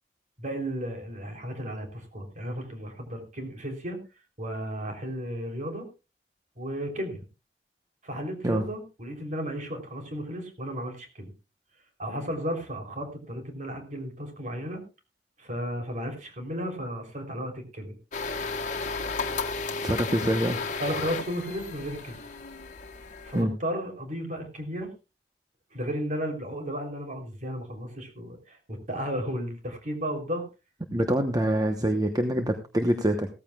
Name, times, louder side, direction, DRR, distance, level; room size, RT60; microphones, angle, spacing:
voice 1, 0.4-4.0 4.4-5.9 6.6-7.2 8.0-11.3 12.0-14.8 15.4-18.0 20.7-22.2 23.2-24.9 25.7-30.4, equal, 45° right, 3 dB, 3.4 m, -34 dB
sound 1, 18.1-23.4, left 4 dB, 45° left, 1.6 m, -33 dB
voice 2, 19.8-20.6 23.3-23.5 30.9-33.3, right 1 dB, 20° right, 5 dB, 1.0 m, -25 dB
16.5 x 14.5 x 2.3 m, 0.29 s
head